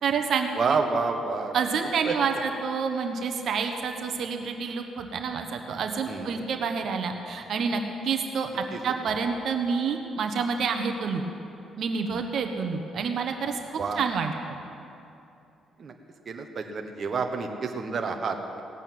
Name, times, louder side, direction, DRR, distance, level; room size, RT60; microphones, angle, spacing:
voice 1, 0.0-0.8 1.5-11.2 11.8-13.6 14.0-14.3, right 5 dB, 65° right, 5 dB, 1.2 m, -28 dB
voice 2, 0.6-1.5 2.0-2.1 6.1-6.4 8.7-8.8 13.8-14.0 15.8-15.9 16.3-18.6, right 4 dB, 45° right, 4 dB, 1.2 m, -29 dB
18.0 x 8.3 x 9.4 m, 2.7 s
cardioid pair, 90°, 0 cm